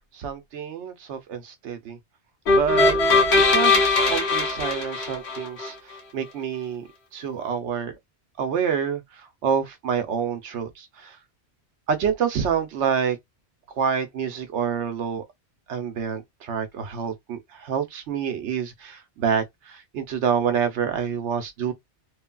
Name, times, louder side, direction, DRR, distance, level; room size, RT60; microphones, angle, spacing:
voice 1, 0.1-2.0 2.5-3.0 3.3-5.7 6.1-6.9 7.1-7.9 8.4-9.0 9.4-11.2 11.9-13.2 13.8-15.2 15.7-21.7, right 7 dB, 85° right, 1.0 m, -27 dB
sound 1, 2.5-5.7, left 3 dB, 70° left, 1.2 m, -20 dB
3.2 x 2.2 x 2.2 m
omnidirectional pair, 1.1 m